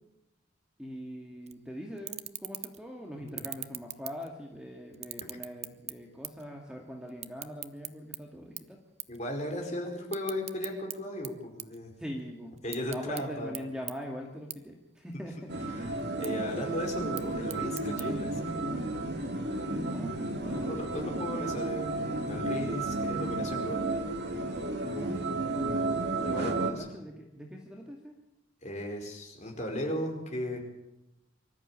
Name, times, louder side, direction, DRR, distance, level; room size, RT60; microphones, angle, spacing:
voice 1, 0.8-8.8 12.0-12.6 12.9-15.6 18.1-18.2 19.5-21.6 24.8-25.2 26.4-28.2, equal, 5° right, 1 dB, 2.2 m, -42 dB
sound 1, 1.5-1.6 2.0-2.9 3.3-4.6 4.9-6.5 6.8-8.2 8.6-8.7 9.0-9.2 9.5-11.0 11.2-12.2 12.6-13.2 13.5-13.6 13.9-14.0 14.5-14.6 15.0-15.5 16.0-16.3 17.0-18.0, right 13 dB, 30° right, 0.7 m, -40 dB
voice 2, 9.1-11.9 12.6-13.5 15.7-15.9 16.2-18.4 20.4-23.8 26.1-26.9 28.6-30.6, left 1 dB, 35° left, 2 dB, 5.0 m, -36 dB
sound 2, 15.5-26.7, right 2 dB, 55° right, 2.1 m, -32 dB
24.5 x 13.5 x 9.0 m, 0.88 s
head